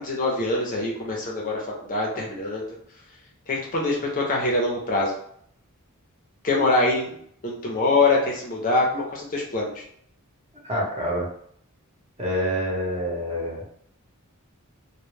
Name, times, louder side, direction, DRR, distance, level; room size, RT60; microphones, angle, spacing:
voice 1, 0.0-1.6 1.9-2.7 3.5-5.2 6.4-7.2 7.4-9.8, left 2 dB, 40° left, -2 dB, 0.5 m, -24 dB
voice 2, 10.6-11.3 12.2-13.6, equal, 30° right, -4 dB, 0.8 m, -27 dB
2.1 x 2.1 x 3.1 m, 0.64 s
head